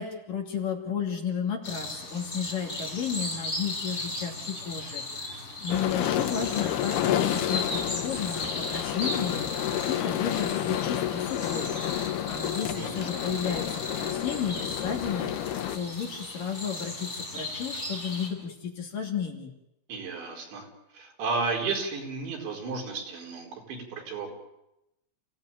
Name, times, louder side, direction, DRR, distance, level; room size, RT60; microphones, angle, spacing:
voice 1, 0.0-19.5, left 7 dB, 50° left, 1 dB, 4.0 m, -33 dB
sound 1, 1.6-18.3, left 2 dB, 15° left, 7.1 m, -37 dB
sound 2, 5.7-15.8, left 12 dB, 70° left, 2.8 m, -30 dB
voice 2, 12.8-13.1 19.9-20.7 20.9-24.3, right 4 dB, 75° right, 1 dB, 7.0 m, -33 dB
30.0 x 17.0 x 9.1 m, 0.90 s
omnidirectional pair, 5.2 m